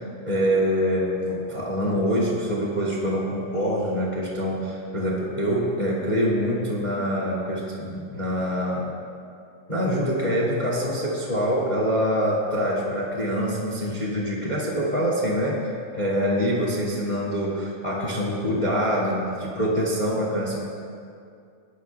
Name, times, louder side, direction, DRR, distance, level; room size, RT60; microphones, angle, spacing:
voice 1, 0.2-8.9 9.7-15.6 15.9-20.6, equal, 20° left, -4 dB, 1.2 m, -25 dB
21.5 x 12.0 x 2.3 m, 2.3 s
omnidirectional pair, 4.0 m